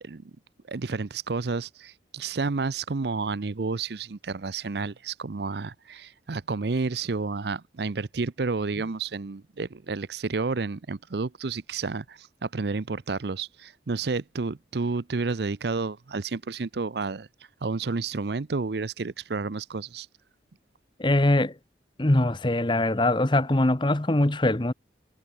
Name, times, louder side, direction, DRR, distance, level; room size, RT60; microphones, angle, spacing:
voice 1, 0.7-17.3 17.6-20.1, right 4 dB, 65° right, 0.6 m, -30 dB
voice 2, 21.0-21.5 22.0-24.7, left 1 dB, 25° left, 1.0 m, -22 dB
head